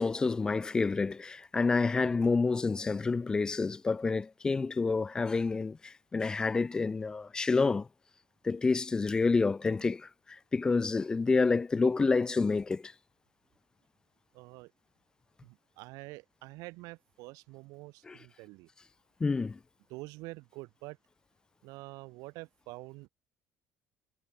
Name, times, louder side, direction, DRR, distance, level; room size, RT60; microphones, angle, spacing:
voice 1, 0.0-7.9 8.4-12.9 18.1-18.2 19.2-19.6, left 4 dB, 10° left, 0.3 m, -28 dB
voice 2, 14.3-14.7 15.4-18.7 19.9-21.0 21.6-23.1, right 23 dB, 75° right, 7.6 m, -46 dB
cardioid pair, 175°, 6 cm